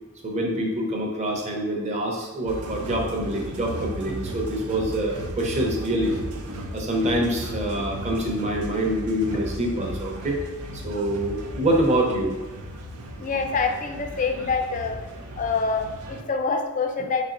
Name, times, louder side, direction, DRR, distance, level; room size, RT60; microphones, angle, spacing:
voice 1, 0.2-6.1 6.7-10.4 10.7-12.3, right 1 dB, 30° right, 0 dB, 0.7 m, -25 dB
sound 1, 2.5-16.2, equal, 90° right, 0.5 m, -35 dB
voice 2, 13.2-15.0 15.4-17.2, left 4 dB, 35° left, 4 dB, 0.4 m, -26 dB
4.5 x 4.1 x 2.5 m, 1.2 s
head